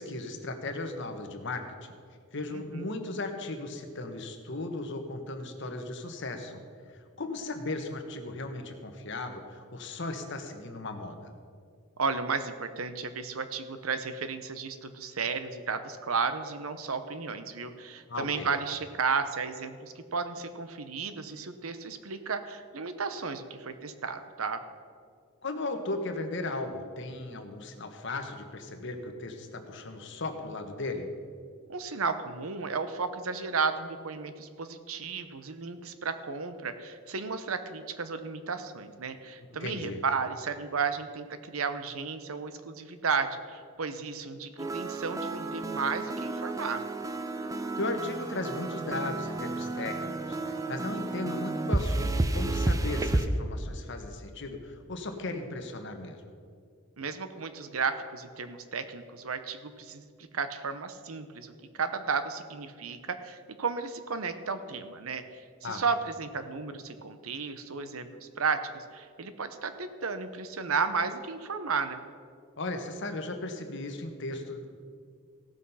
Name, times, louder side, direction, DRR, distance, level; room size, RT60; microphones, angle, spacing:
voice 1, 0.0-1.9 2.3-6.6 6.9-11.3 18.1-18.5 25.4-31.1 39.5-40.0 47.8-56.3 65.6-65.8 72.6-74.7, left 2 dB, 60° left, 5 dB, 1.2 m, -36 dB
voice 2, 2.5-3.0 12.0-24.6 31.7-46.8 57.0-60.1 60.3-61.5 61.8-72.0, right 5 dB, 85° right, 10 dB, 0.8 m, -33 dB
sound 1, 44.6-53.3, right 2 dB, 15° right, 0.5 m, -31 dB
16.5 x 6.2 x 5.6 m, 2.2 s
head